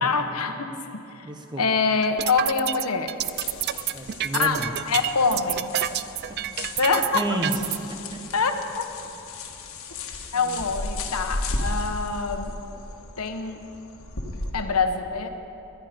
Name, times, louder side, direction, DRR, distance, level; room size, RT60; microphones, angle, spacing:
voice 1, 0.0-1.3 1.6-3.2 4.3-5.7 6.8-7.4 8.3-8.8 10.3-12.6 13.2-13.6 14.5-15.3, left 4 dB, 90° left, 6 dB, 1.1 m, -25 dB
voice 2, 1.2-1.6 3.9-4.7 5.9-6.0 7.1-7.6 7.9-8.2 10.5-10.6, right 2 dB, 20° right, 4 dB, 1.1 m, -31 dB
sound 1, 2.0-7.8, right 13 dB, 50° right, 0.3 m, -28 dB
sound 2, 3.2-14.5, left 2 dB, 70° left, 1.5 m, -35 dB
19.5 x 11.5 x 5.2 m, 3.0 s
head